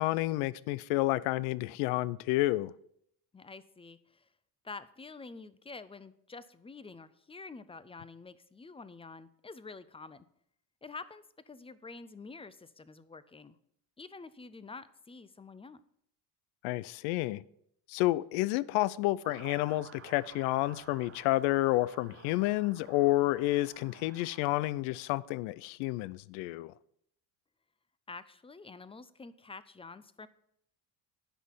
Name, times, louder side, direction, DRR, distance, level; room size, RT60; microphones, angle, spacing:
voice 1, 0.0-2.7 16.6-17.4 17.9-26.7, left 18 dB, 75° left, 0.6 m, -30 dB
voice 2, 3.3-4.3 4.6-10.3 10.8-13.6 14.0-15.8 28.1-30.3, left 4 dB, 10° left, 0.5 m, -48 dB
Motor vehicle (road) / Siren, 19.2-24.6, right 8 dB, 30° right, 0.6 m, -53 dB
10.0 x 5.6 x 6.0 m
supercardioid pair, 85°, 49 cm